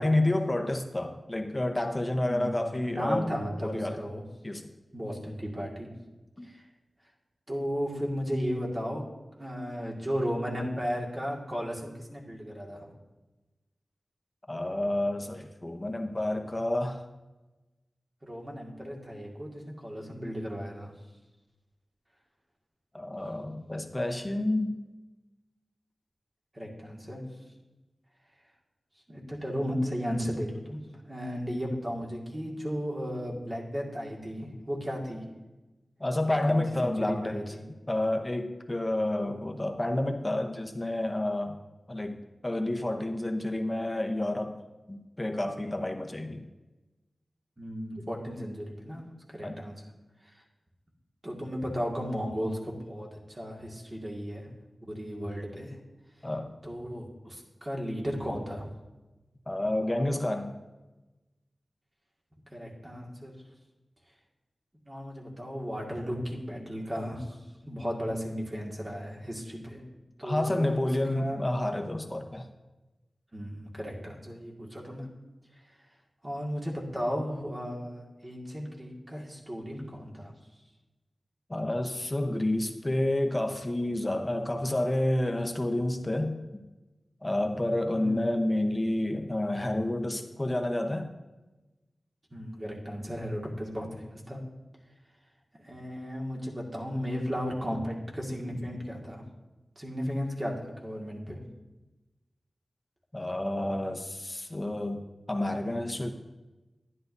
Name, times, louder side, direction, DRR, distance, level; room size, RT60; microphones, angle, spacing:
voice 1, 0.0-3.3 3.6-4.0 4.4-4.7 6.4-6.5 14.5-17.1 22.9-24.8 36.0-37.6 37.9-41.6 41.9-42.1 42.4-44.6 44.9-46.4 49.4-49.6 56.2-56.5 59.5-60.5 70.2-72.5 81.5-86.4 87.2-91.1 103.1-105.0 105.3-106.1, left 1 dB, 20° left, 5 dB, 0.9 m, -29 dB
voice 2, 2.2-4.2 4.9-5.9 6.4-6.6 7.5-9.0 9.4-12.9 18.2-20.9 26.5-27.3 29.1-30.8 31.1-35.2 36.3-37.6 47.6-49.8 50.2-50.4 51.2-54.5 54.8-55.8 56.6-58.7 62.5-63.4 64.9-67.4 67.7-69.8 70.2-70.8 71.1-71.4 73.3-75.1 76.2-80.3 87.9-88.3 92.3-94.4 95.6-99.3 99.8-101.4, equal, 30° right, -2 dB, 2.0 m, -35 dB
11.0 x 10.5 x 2.7 m, 1.1 s
wide cardioid pair, 85°, 0 cm